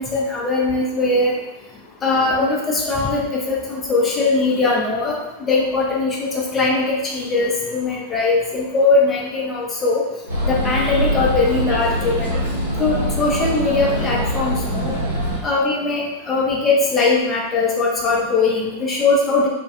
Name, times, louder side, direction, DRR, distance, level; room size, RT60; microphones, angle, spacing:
voice 1, 0.0-1.3 2.0-10.0 10.4-12.3 12.8-15.0 15.4-19.5, left 3 dB, 20° left, -3 dB, 0.5 m, -20 dB
sound 1, 10.3-15.4, equal, 80° right, 0.7 m, -23 dB
2.2 x 2.1 x 2.7 m, 0.95 s
figure-of-eight pair, 90°, 0 cm